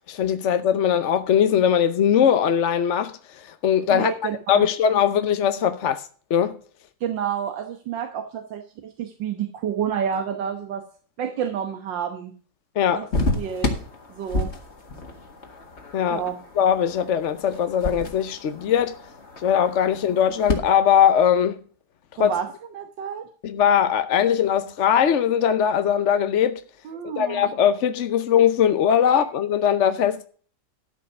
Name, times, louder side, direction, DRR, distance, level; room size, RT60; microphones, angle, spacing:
voice 1, 0.1-4.1 4.5-6.0 6.3-6.6 12.8-13.1 15.9-16.2 16.6-19.0 19.4-21.6 22.2-22.4 23.4-26.6 27.0-30.3, left 8 dB, 55° left, 0.9 m, -20 dB
voice 2, 3.9-4.7 7.0-10.8 11.2-12.3 12.9-13.1 13.4-13.7 14.1-14.5 16.1-16.4 22.2-22.5 22.7-23.3 26.9-27.5 29.1-29.2, right 8 dB, 90° right, 1.8 m, -29 dB
sound 1, 13.1-20.6, left 2 dB, 40° left, 2.0 m, -31 dB
13.0 x 5.5 x 6.7 m
omnidirectional pair, 1.9 m